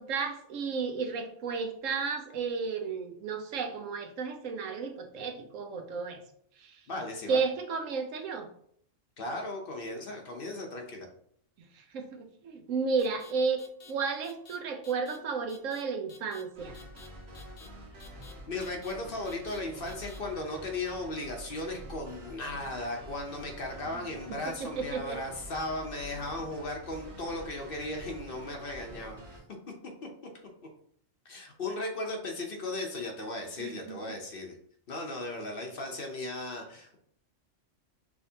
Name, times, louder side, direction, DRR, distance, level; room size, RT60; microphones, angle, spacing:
voice 1, 0.0-6.2 6.6-6.8 7.3-8.5 11.7-13.6 13.9-16.8 23.9-24.4 24.8-25.2 33.6-34.1, right 5 dB, 80° right, 4 dB, 1.1 m, -33 dB
voice 2, 6.9-7.4 9.2-11.1 18.5-29.4 30.0-30.1 31.2-34.5 34.9-37.0, left 2 dB, 50° left, 2 dB, 0.9 m, -36 dB
sound 1, 13.0-13.3 13.6-13.9 14.2-14.6 14.8-15.2 15.5-15.8 16.1-16.4 16.7-17.1 17.3-17.7 18.0-18.3 18.6-18.9 19.3-19.6 19.9-20.2, left 6 dB, 70° left, 1.1 m, -52 dB
sound 2, 16.5-29.4, right 1 dB, 55° right, 1.3 m, -47 dB
5.9 x 3.3 x 2.7 m, 0.64 s
omnidirectional pair, 1.3 m